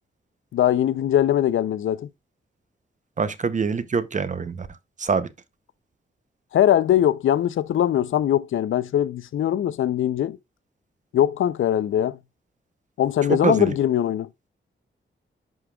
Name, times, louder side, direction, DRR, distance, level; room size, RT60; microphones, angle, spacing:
voice 1, 0.5-2.1 6.5-10.4 11.1-12.2 13.0-14.3, left 11 dB, 75° left, 0.4 m, -21 dB
voice 2, 3.2-4.7 5.0-5.3 13.3-13.8, right 5 dB, 35° right, 0.6 m, -24 dB
11.0 x 5.0 x 2.3 m
wide cardioid pair, 110°, 21 cm